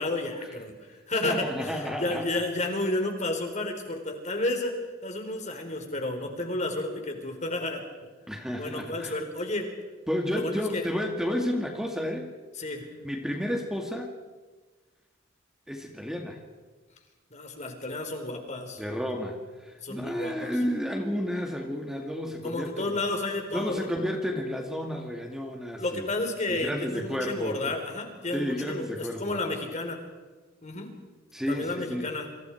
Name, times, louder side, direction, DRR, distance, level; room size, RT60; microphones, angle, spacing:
voice 1, 0.0-7.8 8.6-9.7 10.3-10.9 12.6-12.9 17.3-18.8 19.8-20.6 22.4-23.9 25.8-30.0 30.6-30.9 31.5-32.3, left 2 dB, 35° left, 4 dB, 4.1 m, -31 dB
voice 2, 1.2-2.3 8.3-9.2 10.1-12.3 13.0-14.1 15.7-16.4 18.8-22.9 23.5-26.1 26.5-27.7 28.3-29.4 31.3-32.1, equal, 5° right, 1 dB, 2.2 m, -31 dB
29.0 x 26.5 x 4.7 m, 1.3 s
head